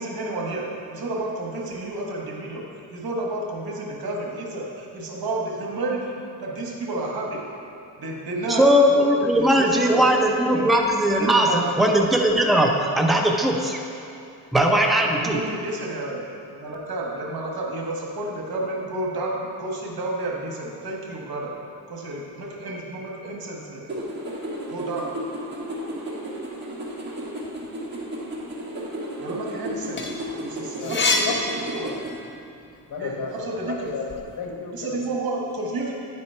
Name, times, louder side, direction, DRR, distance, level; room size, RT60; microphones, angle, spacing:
voice 1, 0.0-7.5 8.0-10.7 11.2-11.6 15.1-16.2 16.5-21.5 21.9-23.8 24.7-25.1 29.2-30.0 30.4-31.3 31.7-31.9 33.0-34.0 34.7-35.9, right 2 dB, 70° right, -1 dB, 1.4 m, -31 dB
voice 2, 8.5-13.8 14.5-15.4, equal, ahead, 1 dB, 0.6 m, -19 dB
sound 1, 23.9-32.2, equal, 30° right, 1.4 m, -33 dB
sound 2, 29.7-32.4 32.8-34.2, left 2 dB, 30° left, 0.7 m, -28 dB
voice 3, 30.8-31.6 32.9-35.1, left 5 dB, 55° left, 1 dB, 1.1 m, -32 dB
9.8 x 4.2 x 4.4 m, 2.7 s
cardioid pair, 105°, 38 cm